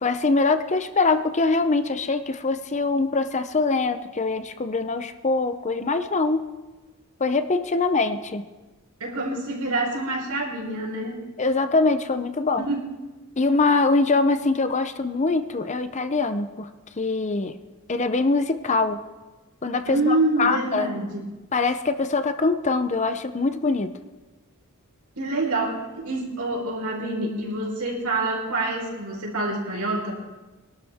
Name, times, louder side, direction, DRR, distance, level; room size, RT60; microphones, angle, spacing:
voice 1, 0.0-6.5 7.2-8.4 11.4-12.7 13.4-16.7 17.0-17.6 17.9-19.0 19.6-20.9 21.5-23.9, left 3 dB, 30° left, 9 dB, 0.6 m, -23 dB
voice 2, 9.0-11.3 12.6-12.9 19.9-21.2 25.2-30.1, right 2 dB, 85° right, -2 dB, 4.5 m, -26 dB
23.0 x 12.0 x 3.6 m, 1.2 s
head